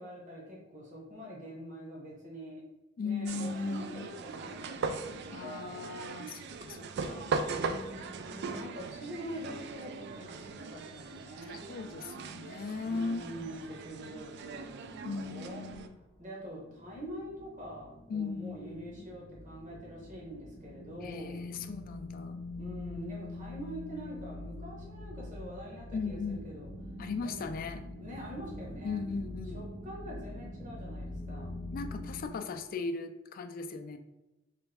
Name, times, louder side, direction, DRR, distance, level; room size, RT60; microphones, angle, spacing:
voice 1, 0.0-2.6 3.0-5.9 7.5-11.6 12.8-15.6 16.2-21.5 22.6-26.7 27.2-27.3 28.0-29.0 29.5-31.6, equal, 40° right, -4 dB, 1.1 m, -45 dB
voice 2, 3.0-4.1 5.3-7.3 11.7-13.3 15.0-16.0 18.1-19.0 21.0-22.4 25.9-26.6 27.0-27.8 28.8-29.6 31.7-34.0, left 4 dB, 45° left, 8 dB, 0.3 m, -38 dB
sound 1, 3.3-15.9, right 4 dB, 55° right, 0.3 m, -39 dB
sound 2, 16.7-32.3, left 2 dB, ahead, 0.6 m, -44 dB
3.4 x 3.1 x 3.3 m, 1.0 s
head